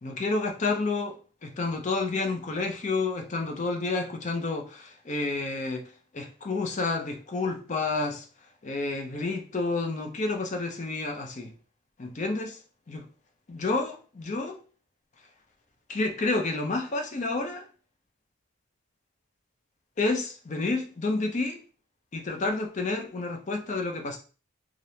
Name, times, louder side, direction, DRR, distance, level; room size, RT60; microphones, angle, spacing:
voice 1, 0.0-1.2 1.4-5.9 6.1-8.3 8.6-11.5 12.0-12.6 12.9-13.0 13.5-14.6 15.9-17.6 20.0-21.6 22.1-24.2, left 3 dB, 35° left, 0.5 m, -29 dB
3.3 x 2.4 x 2.7 m
head